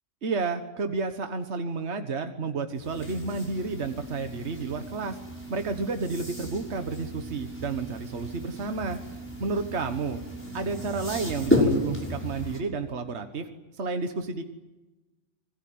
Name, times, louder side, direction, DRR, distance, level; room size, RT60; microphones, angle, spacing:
voice 1, 0.2-5.2 5.5-9.0 9.4-10.2 10.5-13.5 13.8-14.5, right 4 dB, 60° right, 7 dB, 1.7 m, -31 dB
sound 1, 2.7-12.6, left 1 dB, 10° left, 6.2 m, -32 dB
26.5 x 20.5 x 9.6 m, 1.1 s
omnidirectional pair, 1.3 m